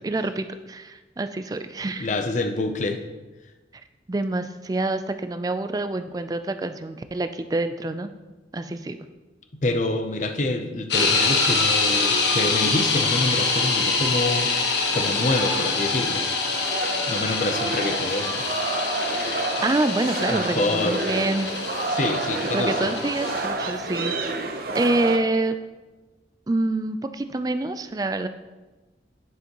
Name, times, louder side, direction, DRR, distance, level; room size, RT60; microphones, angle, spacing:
voice 1, 0.0-2.1 4.1-8.1 8.5-9.0 19.6-21.5 22.5-24.3 24.7-25.6 26.5-28.3, right 2 dB, 20° right, 9 dB, 0.3 m, -26 dB
voice 2, 2.0-3.0 9.6-14.5 14.9-16.2 17.1-18.4 20.3-21.0 21.9-22.9, left 2 dB, 40° left, 6 dB, 0.6 m, -26 dB
sound 1, 10.9-23.4, left 4 dB, 85° left, 1.2 m, -25 dB
sound 2, 16.5-25.2, right 3 dB, 55° right, 0.7 m, -29 dB
9.6 x 6.8 x 3.0 m, 1.2 s
head